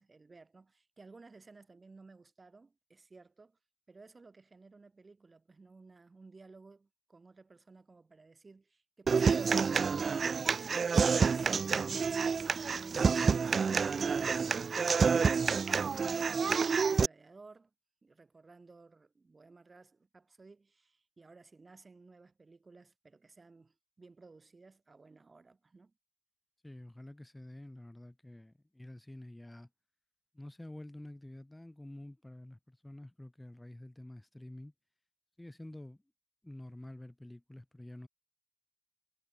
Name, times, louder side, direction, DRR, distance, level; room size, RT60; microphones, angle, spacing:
voice 1, 0.0-3.6 3.9-11.5 16.0-16.3 16.9-17.7 18.0-25.9, right 3 dB, 30° right, 5.1 m, -57 dB
Human voice / Acoustic guitar, 9.1-17.1, right 5 dB, 45° right, 0.4 m, -28 dB
voice 2, 26.6-29.7 30.3-34.7 35.4-36.0 36.4-38.1, left 1 dB, 10° left, 4.7 m, -49 dB
cardioid pair, 70°, 0 cm